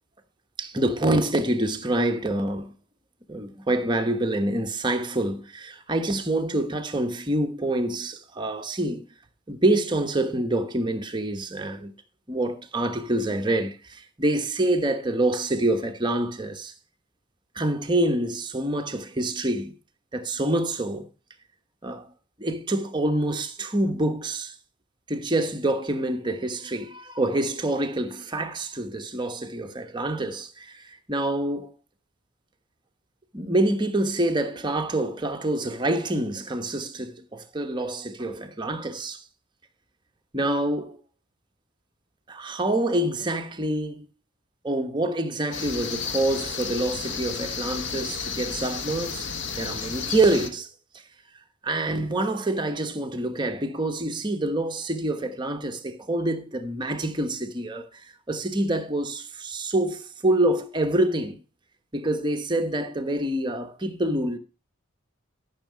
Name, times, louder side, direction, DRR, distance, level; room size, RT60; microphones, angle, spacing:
voice 1, 0.6-2.7 3.3-9.1 9.5-11.9 12.3-16.7 17.5-19.7 20.1-21.1 21.8-22.1 22.4-24.5 25.1-31.7 33.3-39.2 40.3-41.0 42.3-44.1 44.6-50.7 51.6-61.4 61.9-64.4, right 1 dB, 20° right, 1.1 m, -26 dB
sound 1, 45.5-50.5, left 5 dB, 60° left, 1.1 m, -32 dB
13.5 x 6.5 x 4.6 m
head